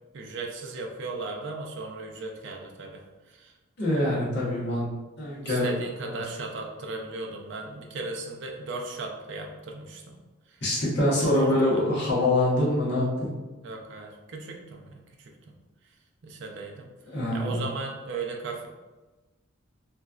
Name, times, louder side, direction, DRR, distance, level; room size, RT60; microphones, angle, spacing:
voice 1, 0.1-3.5 5.4-10.2 10.5-10.6 11.2-12.2 13.6-15.5 16.2-16.9 17.3-18.7, right 3 dB, 55° right, 1 dB, 0.4 m, -37 dB
voice 2, 3.8-4.9 5.2-5.8 10.6-13.1 17.1-17.6, left 1 dB, 50° left, -7 dB, 1.0 m, -24 dB
3.0 x 2.5 x 2.3 m, 1.2 s
head